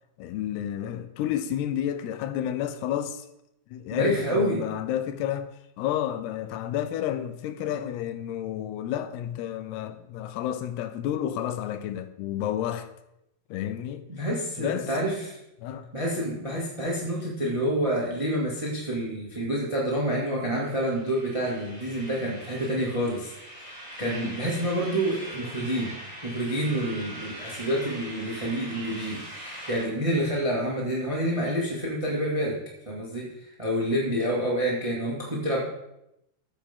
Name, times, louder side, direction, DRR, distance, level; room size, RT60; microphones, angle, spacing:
voice 1, 0.2-3.3 3.7-5.5 5.8-12.9 13.5-14.0 14.6-14.9 15.6-15.9 24.0-24.4 34.9-35.1, left 11 dB, 90° left, 2.8 m, -31 dB
voice 2, 3.9-4.6 14.1-15.4 15.9-23.3 23.6-25.9 26.2-32.6 32.8-33.3 33.6-35.6, right 1 dB, 15° right, 1.4 m, -28 dB
sound 1, 20.7-29.8, right 1 dB, 10° left, 3.4 m, -42 dB
14.0 x 8.1 x 3.8 m
omnidirectional pair, 4.5 m